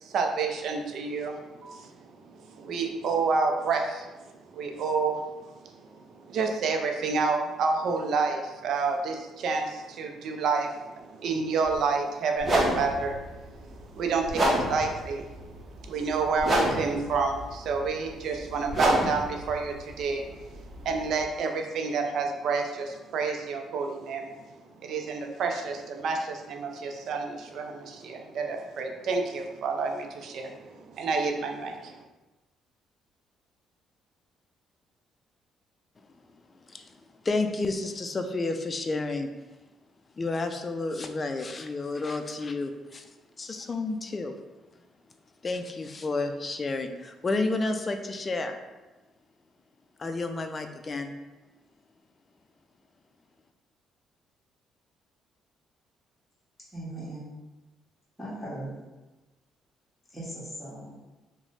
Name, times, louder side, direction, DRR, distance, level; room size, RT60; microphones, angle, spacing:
voice 1, 0.0-4.1 4.5-24.5 24.8-32.0, right 4 dB, 70° right, 3 dB, 0.4 m, -29 dB
sound 1, 11.6-11.8 12.4-21.2, right 1 dB, 35° right, 0.8 m, -29 dB
voice 2, 36.5-39.3 40.1-43.1 43.4-44.3 45.4-48.6 50.0-51.1, left 3 dB, 35° left, 6 dB, 0.4 m, -31 dB
voice 3, 56.7-57.3 58.2-58.7 60.1-61.0, right 1 dB, 10° left, -8 dB, 1.4 m, -38 dB
3.0 x 2.1 x 4.0 m, 1.1 s
supercardioid pair, 75°, 0 cm